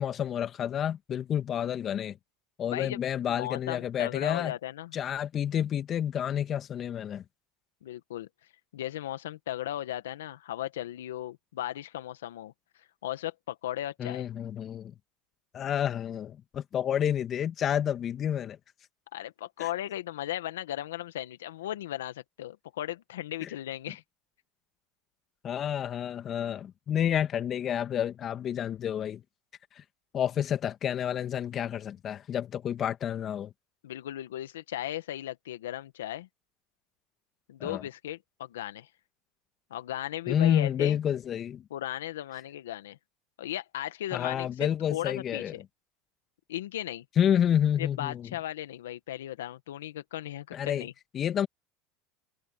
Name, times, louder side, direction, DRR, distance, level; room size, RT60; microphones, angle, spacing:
voice 1, 0.0-2.2 2.6-4.5 4.9-7.2 14.0-14.9 15.5-18.6 19.6-19.7 23.4-23.5 25.4-29.2 30.1-33.5 37.6-37.8 40.3-41.6 44.1-45.5 47.2-48.3 50.5-50.8 51.1-51.5, left 9 dB, 40° left, 2.0 m, -29 dB
voice 2, 2.6-3.0 3.3-5.0 7.8-8.3 8.7-12.5 13.0-14.3 19.1-24.0 33.8-36.3 37.5-38.9 39.7-41.0 41.7-43.0 43.4-45.6 46.5-47.0 47.8-50.9, left 13 dB, 85° left, 1.7 m, -36 dB
hypercardioid pair, 95°, 0 cm